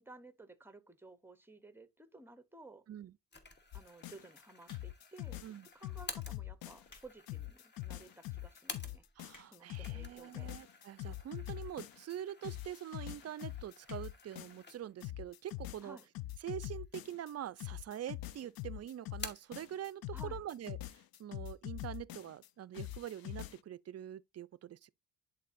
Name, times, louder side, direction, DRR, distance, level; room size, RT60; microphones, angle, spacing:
voice 1, 0.0-2.8 3.7-5.4 5.7-9.0 9.4-10.5 15.8-16.1 20.1-20.5, right 2 dB, 5° right, 0.7 m, -55 dB
sound 1, 3.3-9.3 9.6-15.1 15.5-15.6 16.5-17.1 17.4-18.2 18.5-19.6, left 2 dB, 25° left, 1.2 m, -52 dB
sound 2, 3.7-4.4 4.7-7.0 7.3-12.2 12.4-14.7 15.0-17.3 17.6-22.5 22.7-23.6, left 15 dB, 60° left, 0.5 m, -44 dB
sound 3, 4.6-5.2 5.9-6.1 6.6-7.1 7.6-7.7 8.3-8.4 8.6-8.7 8.9-9.8 10.6-10.7 11.4-11.8 12.1-12.2 12.4-12.5 12.7-12.8 13.1-13.3 13.8-14.1 14.5-14.6 14.8-14.9, left 2 dB, 45° left, 2.3 m, -61 dB
voice 2, 9.2-16.0 16.4-24.9, right 11 dB, 40° right, 0.4 m, -45 dB
10.5 x 3.8 x 2.5 m
cardioid pair, 105°, 41 cm